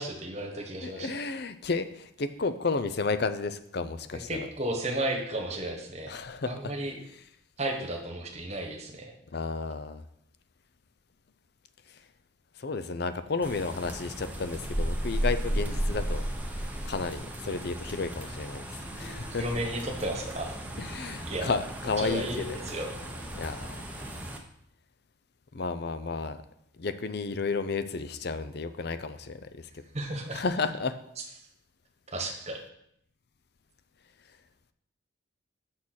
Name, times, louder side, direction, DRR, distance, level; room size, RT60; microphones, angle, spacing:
voice 1, 0.0-1.2 4.3-6.2 6.5-7.0 7.6-9.1 19.4-20.6 21.2-21.6 22.0-23.0 29.9-30.4 32.1-32.6, right 1 dB, 35° right, 2 dB, 1.3 m, -33 dB
voice 2, 0.8-4.5 6.1-6.8 7.1-7.3 9.3-10.0 11.9-12.0 12.6-16.3 16.6-19.5 20.7-22.9 23.3-24.0 25.5-26.4 26.8-29.8 30.3-31.0, left 4 dB, 55° left, 11 dB, 0.5 m, -32 dB
sound 1, 13.4-24.4, right 1 dB, 10° right, 0.7 m, -35 dB
6.5 x 5.6 x 6.4 m, 0.74 s
head